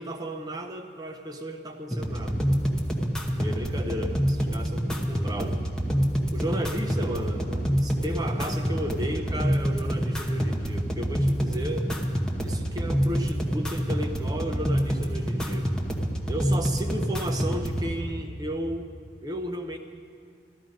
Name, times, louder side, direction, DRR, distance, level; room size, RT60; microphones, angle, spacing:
voice 1, 0.0-2.4 3.3-5.6 6.3-12.0 12.4-15.8 16.3-18.9 19.2-19.8, right 1 dB, 20° right, 5 dB, 0.6 m, -34 dB
sound 1, 1.9-17.9, equal, 5° left, 1.0 m, -27 dB
13.5 x 13.0 x 5.2 m, 2.2 s
head